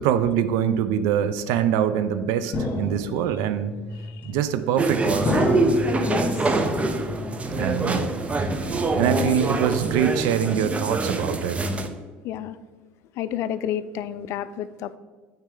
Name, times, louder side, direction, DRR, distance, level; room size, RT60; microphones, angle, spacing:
voice 1, 0.0-3.8 4.3-5.3 7.5-8.1 8.7-11.6, right 9 dB, 75° right, 11 dB, 0.5 m, -24 dB
sound 1, 2.5-3.4 4.2-4.7 5.3-6.1 6.6-7.2 7.5-8.3 8.6-9.0 9.4-10.0, left 2 dB, 30° left, 2.2 m, -30 dB
sound 2, 3.3-11.6, left 2 dB, 90° right, 2.1 m, -39 dB
sound 3, 4.8-11.9, right 2 dB, 25° right, 0.7 m, -25 dB
voice 2, 6.0-6.6 9.1-9.4 12.2-12.6 13.1-15.0, left 10 dB, 60° left, 14 dB, 0.4 m, -31 dB
8.7 x 4.4 x 3.8 m, 1.3 s
hypercardioid pair, 80°, 5 cm